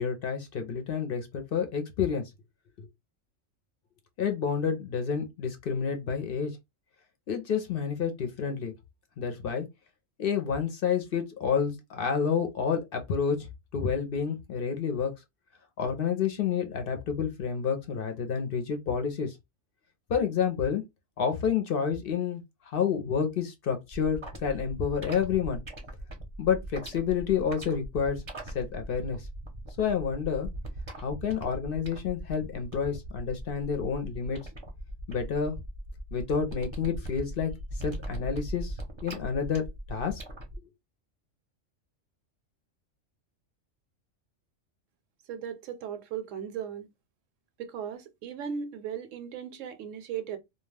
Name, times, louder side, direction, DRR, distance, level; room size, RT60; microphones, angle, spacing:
voice 1, 0.0-2.2 2.8-2.9 4.2-6.5 7.3-8.7 9.2-9.7 10.2-13.4 13.7-15.1 15.8-19.3 20.1-20.8 21.2-25.6 26.4-29.3 29.8-30.5 31.0-34.4 35.1-35.6 36.1-37.5 37.8-38.7 39.0-40.2 40.6-40.7, left 6 dB, 55° left, 0.7 m, -29 dB
sound 1, 23.9-40.6, right 1 dB, 30° right, 0.6 m, -40 dB
voice 2, 45.3-46.9 47.6-50.4, right 8 dB, 75° right, 0.9 m, -37 dB
2.2 x 2.2 x 3.2 m
omnidirectional pair, 1.3 m